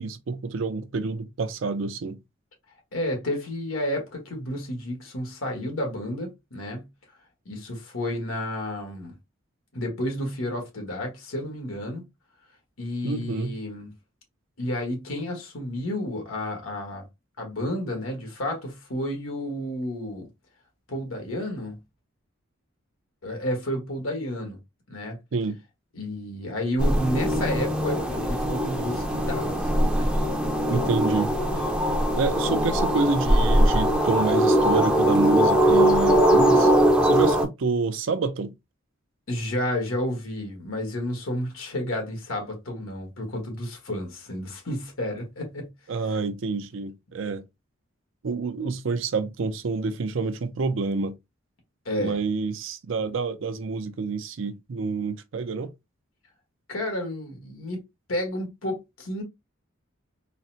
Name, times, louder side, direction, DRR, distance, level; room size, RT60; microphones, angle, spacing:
voice 1, 0.0-2.2 13.0-13.5 25.3-25.6 30.7-31.3 32.2-36.7 37.0-38.5 45.9-47.4 48.2-51.2 52.0-55.7, right 4 dB, 70° right, 0.5 m, -28 dB
voice 2, 2.9-6.9 7.4-9.2 9.7-12.0 12.8-13.9 14.6-17.0 17.4-20.3 20.9-21.8 23.2-24.6 24.9-25.2 25.9-30.1 39.3-45.7 51.8-52.2 56.7-57.8 58.1-59.2, left 1 dB, 90° left, 1.4 m, -31 dB
sound 1, 26.8-37.5, equal, 5° right, 0.5 m, -21 dB
3.9 x 2.1 x 2.7 m
head